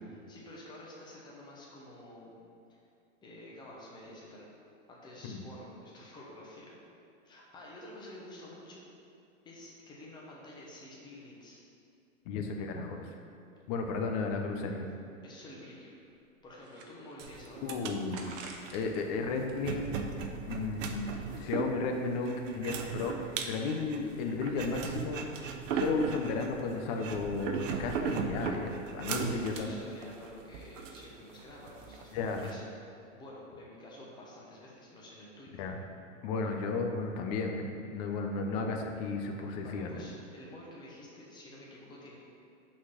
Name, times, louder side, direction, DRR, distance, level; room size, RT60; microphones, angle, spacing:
voice 1, 0.1-2.4 3.2-4.5 4.9-6.8 7.2-8.8 9.4-11.6 15.2-16.0 16.4-17.7 29.2-32.6 33.1-35.6 39.5-42.2, left 1 dB, 10° left, -4 dB, 1.0 m, -50 dB
voice 2, 12.2-13.1 13.7-14.9 17.6-18.3 18.7-19.9 20.5-25.2 25.7-29.7 32.1-32.5 35.6-35.8 36.2-40.0, left 4 dB, 30° left, 3 dB, 0.6 m, -34 dB
sound 1, 16.2-17.4 18.1-19.0 19.4-20.6, right 4 dB, 40° right, 0.8 m, -49 dB
sound 2, 17.2-32.5, right 6 dB, 70° right, 0.8 m, -38 dB
6.1 x 4.0 x 6.2 m, 2.5 s
supercardioid pair, 155°, 39 cm